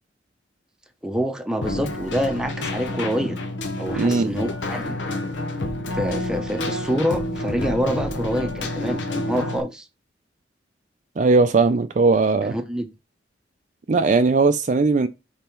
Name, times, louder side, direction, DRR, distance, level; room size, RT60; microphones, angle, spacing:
voice 1, 1.0-3.4 3.8-5.0 5.9-9.9 12.4-12.9, equal, 5° right, 0.7 m, -26 dB
Keyboard (musical), 1.6-9.6, left 1 dB, 85° left, 0.9 m, -28 dB
voice 2, 4.0-4.3 11.2-12.5 13.9-15.1, right 3 dB, 40° right, 0.4 m, -18 dB
5.4 x 4.1 x 4.4 m
head